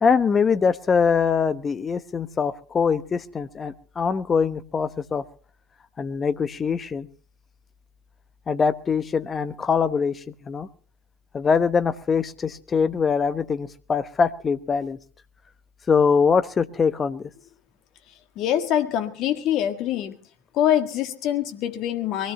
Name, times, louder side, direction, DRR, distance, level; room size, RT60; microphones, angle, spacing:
voice 1, 0.0-5.2 6.0-7.1 8.5-10.7 11.3-15.0 15.9-17.3, left 6 dB, 25° left, 13 dB, 1.0 m, -23 dB
voice 2, 18.4-20.2 20.5-22.3, left 10 dB, 50° left, 8 dB, 1.8 m, -24 dB
23.5 x 17.0 x 2.8 m, 0.39 s
figure-of-eight pair, 75°, 0 cm